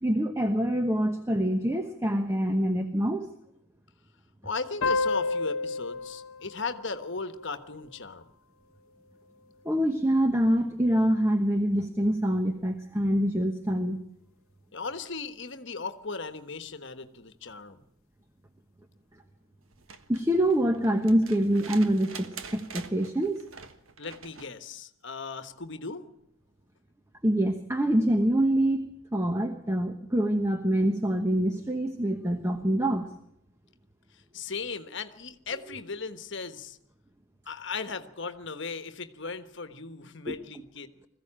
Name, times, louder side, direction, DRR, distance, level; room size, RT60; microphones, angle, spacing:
voice 1, 0.0-3.3 9.6-14.0 20.1-23.4 27.2-33.1 40.3-40.4, right 1 dB, 10° right, 6 dB, 1.0 m, -25 dB
voice 2, 4.4-8.3 14.7-17.8 24.0-26.0 34.3-36.8 37.5-40.9, left 4 dB, 55° left, 10 dB, 1.3 m, -37 dB
sound 1, 4.8-8.0, left 3 dB, 75° left, 1.0 m, -31 dB
sound 2, 19.7-24.6 26.2-26.3, right 6 dB, 70° right, 1.4 m, -46 dB
21.0 x 15.0 x 8.8 m, 0.76 s
head